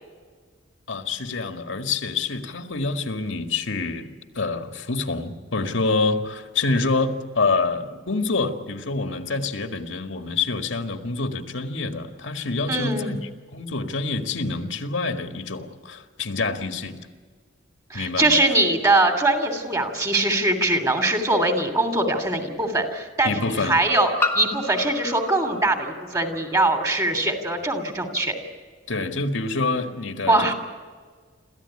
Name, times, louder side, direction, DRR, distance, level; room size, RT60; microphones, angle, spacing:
voice 1, 0.9-13.2 13.5-17.0 17.9-18.4 23.2-23.8 28.9-30.5, left 3 dB, 85° left, 6 dB, 1.9 m, -26 dB
voice 2, 12.7-13.2 17.9-23.3 23.6-28.4 30.3-30.5, right 2 dB, 20° right, 6 dB, 2.8 m, -22 dB
sound 1, 20.3-20.4 22.0-22.1 24.2-26.7, left 3 dB, 10° left, 1.2 m, -31 dB
27.0 x 14.5 x 9.8 m, 1.5 s
head